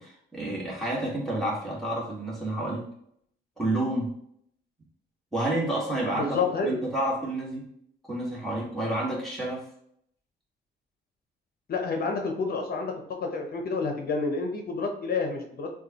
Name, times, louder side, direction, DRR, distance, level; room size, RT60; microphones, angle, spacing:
voice 1, 0.0-2.9 3.6-4.1 5.3-6.4 6.6-7.7 8.1-9.6, right 1 dB, ahead, -5 dB, 1.7 m, -29 dB
voice 2, 6.1-6.8 11.7-15.7, left 4 dB, 50° left, 3 dB, 0.8 m, -29 dB
6.3 x 2.4 x 2.9 m, 0.69 s
cardioid pair, 90°, 20 cm